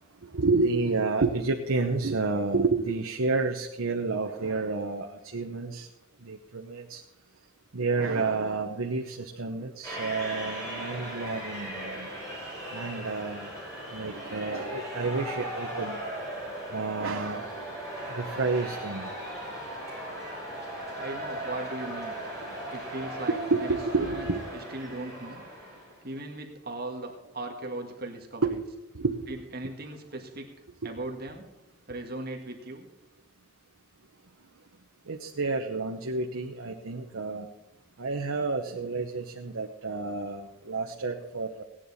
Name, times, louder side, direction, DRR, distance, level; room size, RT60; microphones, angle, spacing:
voice 1, 0.2-5.9 6.2-7.0 7.7-12.1 12.7-13.5 13.9-16.0 16.7-17.5 18.1-19.1 23.3-24.4 28.4-28.7 28.9-29.1 30.8-30.9 35.1-37.5 38.0-41.6, right 3 dB, 90° right, 2 dB, 0.9 m, -30 dB
sound 1, 9.8-26.1, right 1 dB, 15° left, 5.4 m, -38 dB
voice 2, 21.0-22.2 22.7-24.3 24.5-25.4 26.0-28.6 29.3-30.5 30.8-31.4 31.9-32.9, right 2 dB, 45° right, 2 dB, 1.9 m, -38 dB
17.0 x 9.9 x 4.2 m, 0.99 s
head